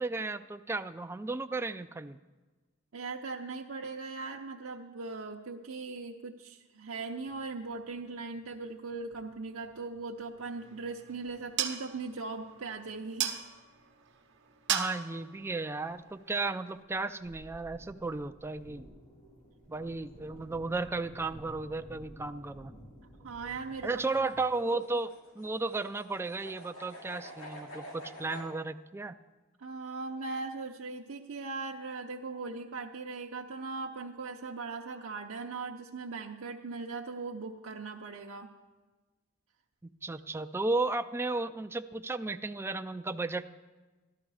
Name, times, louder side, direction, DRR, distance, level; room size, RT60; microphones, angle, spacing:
voice 1, 0.0-2.2 14.7-18.9 19.7-22.7 23.8-29.2 39.8-43.4, right 3 dB, 10° right, 8 dB, 0.3 m, -34 dB
voice 2, 2.9-13.4 23.2-24.0 29.6-38.5, right 4 dB, 75° right, 0 dB, 0.6 m, -39 dB
sound 1, 7.2-10.5 10.8-13.4 15.9-16.0 16.8-24.5, equal, 35° left, 3.0 m, -54 dB
sound 2, 10.4-16.8, right 9 dB, 60° right, 1.0 m, -38 dB
sound 3, 23.7-28.5, left 1 dB, 80° left, 3.1 m, -48 dB
12.5 x 12.5 x 4.8 m, 1.2 s
head